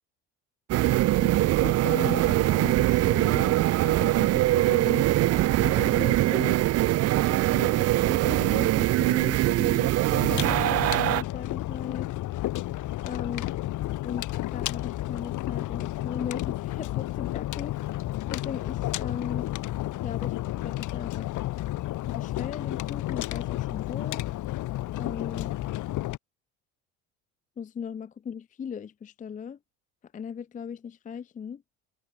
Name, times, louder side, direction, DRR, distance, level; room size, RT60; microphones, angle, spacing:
sound 1, 0.7-11.2, right 15 dB, 45° right, 0.5 m, -22 dB
voice 1, 1.6-5.2 5.6-6.6 7.1-12.1 13.0-13.5 14.0-17.8 18.3-19.5 20.0-20.4 20.6-21.3 21.9-24.2 25.0-25.6 27.6-29.6 30.1-31.6, left 7 dB, 25° left, 0.5 m, -38 dB
sound 2, 10.1-26.2, left 15 dB, 55° left, 1.1 m, -31 dB
hypercardioid pair, 70°, 35 cm